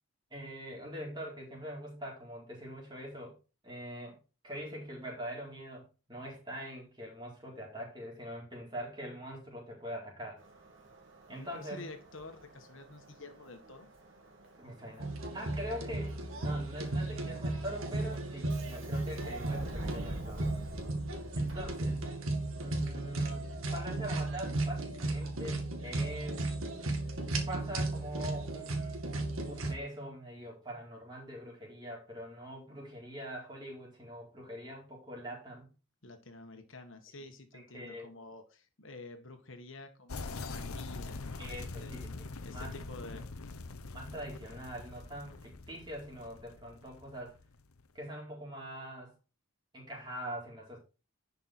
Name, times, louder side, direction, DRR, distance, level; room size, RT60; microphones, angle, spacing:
voice 1, 0.3-3.4 3.6-4.2 4.4-10.4 11.3-11.9 14.6-20.5 21.4-22.0 22.6-26.5 27.5-29.1 29.5-35.7 37.5-38.1 41.4-42.8 43.9-47.4 47.9-49.1 49.7-50.8, equal, 20° right, -3 dB, 4.2 m, -43 dB
Subway metro underground, 10.4-22.3, right 1 dB, 60° right, 2.7 m, -48 dB
voice 2, 11.3-13.9 36.0-41.9 42.4-43.2, left 2 dB, 65° left, 6 dB, 1.6 m, -49 dB
sound 1, 15.0-29.7, right 2 dB, 75° right, 2.1 m, -35 dB
sound 2, 40.1-47.8, left 3 dB, 90° left, 0.9 m, -43 dB
11.0 x 5.7 x 4.4 m, 0.32 s
head